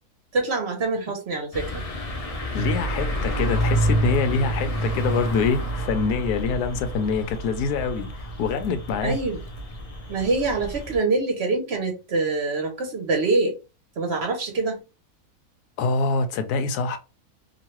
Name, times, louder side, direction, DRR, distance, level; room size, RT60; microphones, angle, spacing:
voice 1, 0.3-1.8 9.0-9.4 10.1-13.6 14.0-14.8, right 3 dB, 55° right, 0.8 m, -25 dB
sound 1, 1.5-11.0, right 1 dB, 70° left, 0.3 m, -28 dB
voice 2, 2.5-9.2 15.8-17.0, left 5 dB, 90° left, 1.1 m, -25 dB
3.0 x 2.5 x 2.9 m
omnidirectional pair, 1.6 m